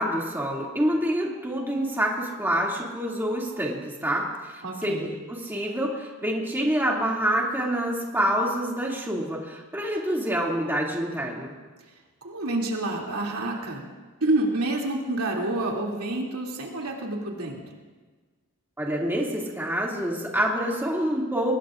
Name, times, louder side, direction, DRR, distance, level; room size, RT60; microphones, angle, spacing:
voice 1, 0.0-11.5 18.8-21.5, equal, 10° right, -3 dB, 2.5 m, -27 dB
voice 2, 4.6-5.1 12.2-13.8 14.2-17.6, right 2 dB, 85° right, -2 dB, 2.8 m, -28 dB
23.5 x 20.5 x 2.5 m, 1.4 s
head